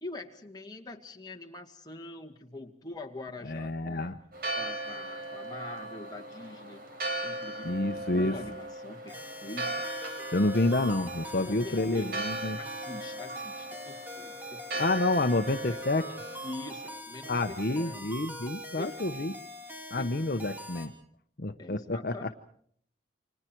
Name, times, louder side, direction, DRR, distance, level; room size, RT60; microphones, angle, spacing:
voice 1, 0.0-4.2 4.6-6.8 7.2-9.9 11.5-12.2 12.6-14.9 16.4-18.1 18.8-19.4 20.0-20.3 21.6-22.3, left 2 dB, 20° left, 2 dB, 2.1 m, -44 dB
voice 2, 3.4-4.1 7.6-8.3 10.3-12.6 14.8-16.1 17.3-19.3 19.9-20.9 21.4-22.3, left 2 dB, 55° left, 8 dB, 1.0 m, -29 dB
Church bell, 4.3-17.0, right 1 dB, 55° right, 4.3 m, -38 dB
sound 1, 9.1-20.9, equal, 10° right, 3.2 m, -43 dB
29.5 x 26.0 x 4.6 m, 0.63 s
head